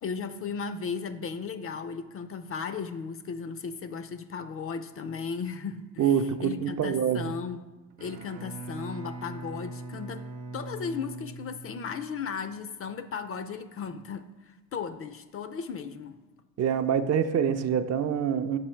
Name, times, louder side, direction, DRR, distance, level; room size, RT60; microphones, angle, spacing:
voice 1, 0.0-6.1 6.4-7.6 8.0-10.3 10.5-16.2, left 5 dB, 35° left, 0.4 m, -36 dB
voice 2, 6.0-7.3 11.7-11.9 16.6-18.6, right 8 dB, 45° right, 0.5 m, -26 dB
Bowed string instrument, 7.9-12.2, right 2 dB, 80° right, 0.8 m, -41 dB
6.0 x 4.7 x 4.4 m
supercardioid pair, 80°, 38 cm